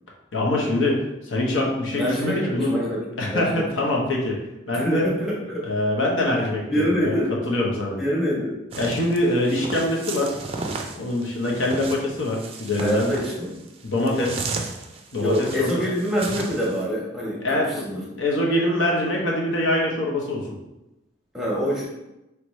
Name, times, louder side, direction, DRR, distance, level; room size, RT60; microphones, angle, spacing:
voice 1, 0.3-2.8 3.2-4.4 4.7-5.1 5.6-7.1 7.4-8.0 8.8-10.4 10.9-13.1 13.8-14.5 15.1-15.8 17.4-17.9 18.2-20.6, left 1 dB, 85° left, -1 dB, 0.9 m, -24 dB
voice 2, 1.9-3.0 3.3-3.7 4.7-5.6 6.4-7.3 8.0-8.6 12.8-13.6 15.2-18.0 21.3-21.8, equal, ahead, -5 dB, 1.2 m, -25 dB
sound 1, 8.7-16.8, right 3 dB, 30° right, 0.4 m, -34 dB
4.7 x 3.3 x 3.1 m, 0.95 s
head